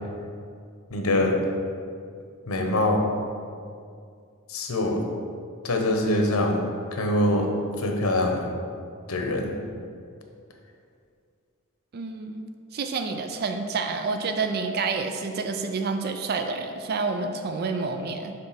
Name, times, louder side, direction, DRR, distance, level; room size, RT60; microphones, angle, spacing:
voice 1, 0.9-1.4 2.5-3.0 4.5-5.0 5.6-6.6 6.9-7.5 7.8-8.4 9.1-9.5, left 1 dB, 85° left, 2 dB, 0.9 m, -23 dB
voice 2, 11.9-12.5 12.7-18.3, right 4 dB, 45° right, 6 dB, 0.4 m, -28 dB
7.0 x 3.3 x 5.7 m, 2.3 s
head